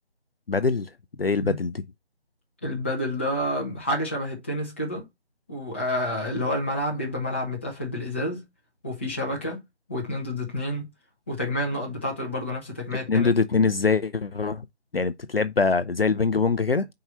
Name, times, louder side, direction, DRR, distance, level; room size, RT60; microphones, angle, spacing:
voice 1, 0.5-0.9 1.2-1.7 13.1-14.6 14.9-16.9, left 4 dB, 60° left, 0.6 m, -23 dB
voice 2, 2.6-5.1 5.5-8.4 8.8-9.6 9.9-10.9 11.3-13.3, left 1 dB, 10° left, 1.2 m, -29 dB
5.4 x 4.8 x 5.4 m
figure-of-eight pair, 170°, 34 cm